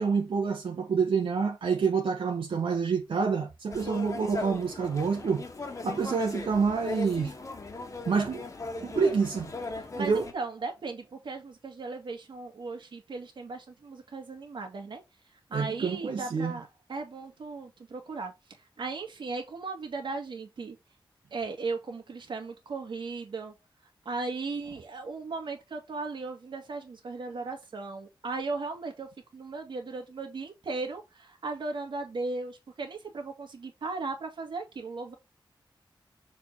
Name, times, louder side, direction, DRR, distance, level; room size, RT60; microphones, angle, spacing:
voice 1, 0.0-5.4 5.8-7.3 8.1-8.4 8.8-9.5 10.0-10.2 15.5-16.5, right 5 dB, 85° right, 1.2 m, -27 dB
sound 1, 3.7-10.3, left 3 dB, 35° left, 1.3 m, -38 dB
voice 2, 9.9-15.0 15.5-18.3 18.8-20.8 21.3-23.5 24.1-35.1, right 3 dB, 65° right, 2.0 m, -37 dB
6.8 x 3.8 x 4.0 m
wide cardioid pair, 175°, 9 cm